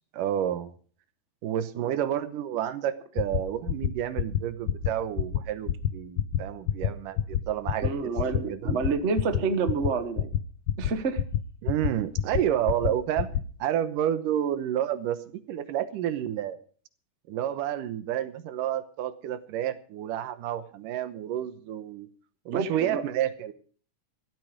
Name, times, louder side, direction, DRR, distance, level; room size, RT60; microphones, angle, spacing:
voice 1, 0.1-0.7 1.4-8.1 8.5-8.8 11.6-13.3 13.6-16.6 17.3-22.1 22.5-23.5, right 11 dB, 85° right, 12 dB, 2.7 m, -30 dB
sound 1, 3.2-3.4 3.7-3.9 4.2-4.4 4.7-4.9 5.2-5.4 5.7-5.9 6.2-6.4 6.7-6.9 7.2-7.4 7.7-7.9 8.2-8.4 8.7-8.9 9.2-9.4 9.7-9.9 10.2-10.4 10.7-10.9 11.2-11.4 11.7-11.9 12.2-12.4 12.7-12.9 13.2-13.4, left 11 dB, 90° left, 1.3 m, -25 dB
voice 2, 7.8-10.3 10.8-11.2 22.5-23.0, right 4 dB, 60° right, 9 dB, 0.7 m, -28 dB
15.5 x 12.5 x 5.1 m, 0.43 s
omnidirectional pair, 3.7 m